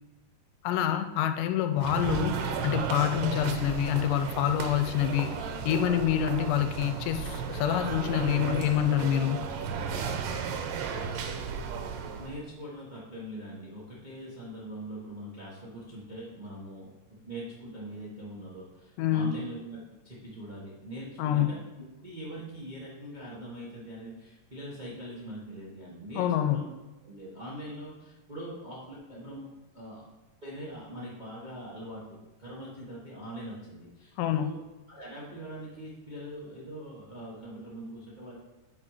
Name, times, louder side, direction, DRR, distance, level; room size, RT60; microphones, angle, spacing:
voice 1, 0.6-5.4 5.6-9.5 19.0-19.3 21.2-21.5 26.2-26.6 34.2-34.5, left 10 dB, 85° left, 8 dB, 2.2 m, -27 dB
sound 1, 1.8-12.4, right 6 dB, 90° right, 2.4 m, -34 dB
voice 2, 12.2-19.8 20.0-21.6 22.0-26.7 27.0-30.1 30.4-34.6 34.9-38.4, right 1 dB, 60° right, -7 dB, 0.4 m, -42 dB
8.7 x 4.8 x 4.9 m, 1.1 s
omnidirectional pair, 3.8 m